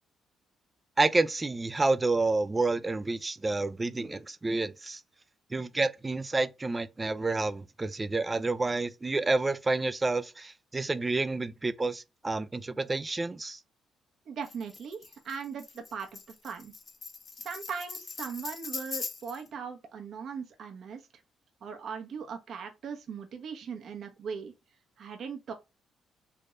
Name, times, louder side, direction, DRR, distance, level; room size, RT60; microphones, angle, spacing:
voice 1, 1.0-5.0 5.5-13.6, right 3 dB, 20° right, 0.4 m, -29 dB
voice 2, 14.3-16.7 17.4-21.1 21.6-24.5 25.0-25.5, right 6 dB, 65° right, 0.9 m, -39 dB
Tambourine, 14.4-19.5, left 4 dB, 40° left, 0.7 m, -41 dB
3.4 x 3.0 x 2.5 m
cardioid pair, 90°, 0 cm